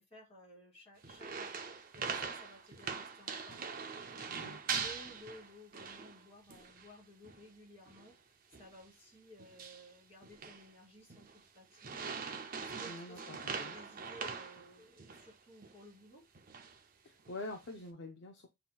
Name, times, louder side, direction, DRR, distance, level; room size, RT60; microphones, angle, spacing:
voice 1, 0.0-8.2 8.5-16.2, equal, 30° left, 2.6 m, -57 dB
sound 1, 1.0-6.2 6.5-6.9 7.2-7.4 7.9-8.1 8.5-8.8 9.4-9.9 10.2-10.7 11.1-11.4 11.8-15.3 15.6-15.7 16.3-16.8 17.3-17.7, right 5 dB, 40° right, 0.5 m, -42 dB
voice 2, 12.9-13.7 17.1-18.5, left 2 dB, 55° left, 0.5 m, -46 dB
7.4 x 2.9 x 2.2 m
head